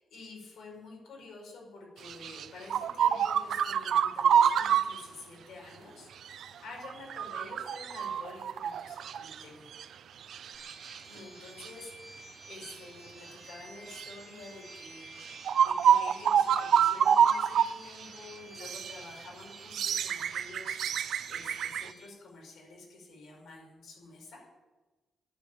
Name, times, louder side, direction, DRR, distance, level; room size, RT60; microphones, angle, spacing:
voice 1, 0.1-9.7 11.0-24.5, left 3 dB, 70° left, -2 dB, 5.5 m, -49 dB
sound 1, 2.0-5.0 6.3-6.5 6.8-9.4 9.7-9.8 10.3-11.0 11.6-11.7 12.5-12.7 13.9-14.1 14.9-15.0 15.2-17.7 18.0-18.1 18.6-19.0 19.5-21.9, right 8 dB, 65° right, 0.5 m, -27 dB
sound 2, 10.5-22.1, right 1 dB, 20° right, 2.8 m, -52 dB
10.5 x 8.3 x 9.1 m, 1.2 s
wide cardioid pair, 170°, 0 cm